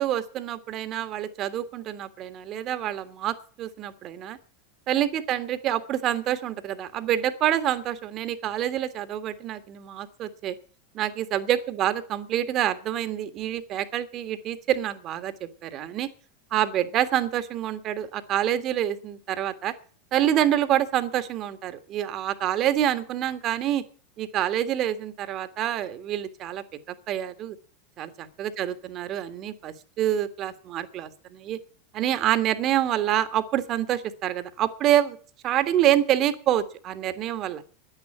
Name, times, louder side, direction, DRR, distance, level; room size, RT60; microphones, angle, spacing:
voice 1, 0.0-4.4 4.9-10.5 10.9-16.1 16.5-19.7 20.1-23.8 24.2-26.6 27.1-27.6 28.0-31.6 31.9-35.2 35.4-37.6, right 11 dB, 40° right, 11 dB, 1.7 m, -27 dB
10.5 x 10.5 x 8.7 m, 0.42 s
figure-of-eight pair, 85°, 0 cm